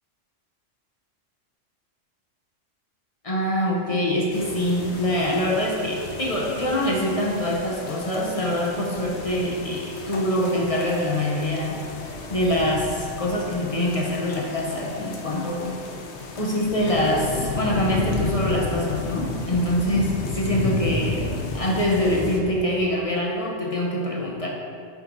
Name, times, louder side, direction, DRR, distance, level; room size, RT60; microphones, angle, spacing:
voice 1, 3.2-11.8 12.3-15.8 16.4-21.3 21.5-24.5, left 1 dB, 35° left, -2 dB, 0.8 m, -24 dB
sound 1, 4.3-22.4, left 3 dB, 65° left, 1.0 m, -32 dB
7.3 x 5.1 x 3.9 m, 2.3 s
omnidirectional pair, 1.3 m